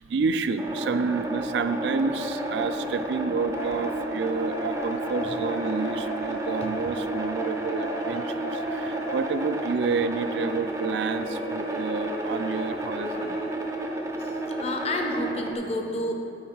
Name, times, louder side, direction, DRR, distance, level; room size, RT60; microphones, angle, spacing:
voice 1, 0.0-13.4, right 5 dB, 80° right, 10 dB, 0.3 m, -29 dB
sound 1, 0.6-15.6, right 1 dB, 15° right, 0.5 m, -32 dB
sound 2, 3.5-9.8 10.4-13.9, equal, 65° left, 0.8 m, -37 dB
voice 2, 14.2-16.1, left 1 dB, 35° left, 3 dB, 0.6 m, -30 dB
8.8 x 4.6 x 4.6 m, 2.8 s
head